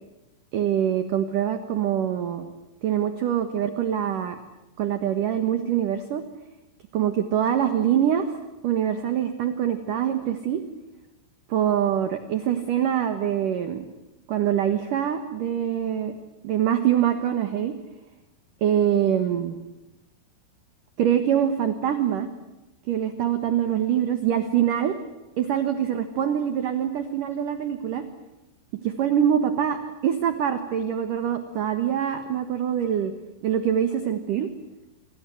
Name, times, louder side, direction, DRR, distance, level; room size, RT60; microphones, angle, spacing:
voice 1, 0.5-2.5 2.8-4.4 4.8-6.2 6.9-8.4 8.6-10.6 11.5-13.9 14.3-16.1 16.4-17.7 18.6-19.6 21.0-22.3 22.9-25.0 25.4-28.0 28.8-29.8 30.0-33.1 33.4-34.5, right 9 dB, 65° right, 9 dB, 2.2 m, -24 dB
28.0 x 25.0 x 7.9 m, 0.98 s
omnidirectional pair, 5.8 m